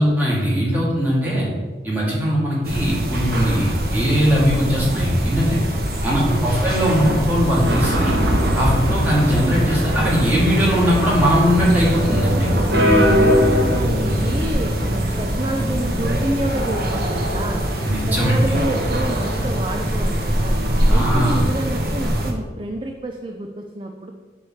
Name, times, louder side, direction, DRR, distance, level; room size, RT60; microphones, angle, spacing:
voice 1, 0.0-1.5 1.8-5.6 6.0-8.2 8.6-12.5 17.8-18.4 20.9-21.4, equal, 10° right, -6 dB, 2.1 m, -20 dB
sound 1, 2.6-22.3, equal, 55° right, 1.1 m, -23 dB
voice 2, 5.7-6.6 12.5-17.7 18.1-20.6 20.9-24.1, right 1 dB, 25° right, 3 dB, 0.4 m, -29 dB
sound 2, 7.6-13.8, equal, 80° right, 1.1 m, -21 dB
8.4 x 3.3 x 6.3 m, 1.4 s
head